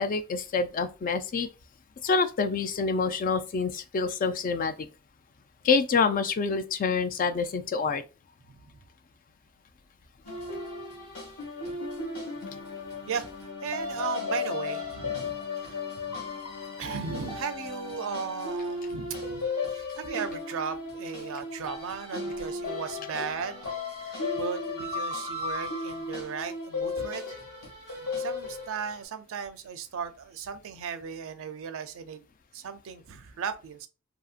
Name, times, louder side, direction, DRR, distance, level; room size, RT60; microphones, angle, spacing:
voice 1, 0.0-1.5 2.0-4.9 5.6-8.0, left 4 dB, 40° left, 0.3 m, -27 dB
sound 1, 10.2-29.0, left 3 dB, 85° left, 1.5 m, -35 dB
voice 2, 13.6-15.8 16.8-23.6 24.0-27.4 27.9-32.2 32.5-33.9, right 6 dB, 60° right, 0.4 m, -36 dB
2.7 x 2.7 x 2.4 m
head